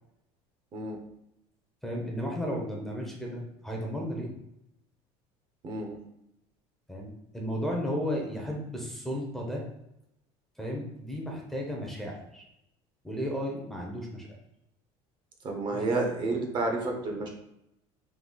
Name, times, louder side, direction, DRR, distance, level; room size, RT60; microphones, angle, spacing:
voice 1, 1.8-4.3 6.9-9.6 10.6-12.5 13.0-14.3 15.7-15.8, equal, 5° left, -2 dB, 0.7 m, -34 dB
voice 2, 5.6-6.0 15.4-17.3, right 2 dB, 35° right, 2 dB, 0.7 m, -30 dB
4.0 x 2.7 x 3.8 m, 0.83 s
cardioid pair, 145°, 13 cm